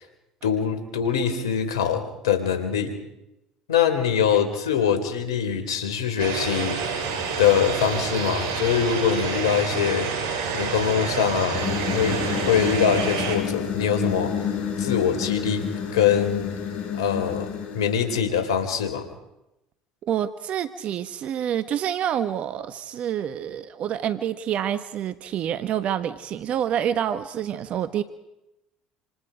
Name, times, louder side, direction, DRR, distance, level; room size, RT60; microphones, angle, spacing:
voice 1, 0.4-2.9 3.7-7.0 7.4-10.1 10.5-11.6 11.9-14.3 14.8-16.5 17.0-17.5 17.7-19.1, left 8 dB, 85° left, 8 dB, 3.4 m, -23 dB
sound 1, 6.2-13.4, right 5 dB, 75° right, 6.9 m, -28 dB
sound 2, 11.5-18.2, left 7 dB, 60° left, 5.9 m, -29 dB
voice 2, 20.0-28.0, right 10 dB, 55° right, 11 dB, 1.2 m, -27 dB
28.0 x 26.5 x 5.1 m, 0.91 s
hypercardioid pair, 75°, 3 cm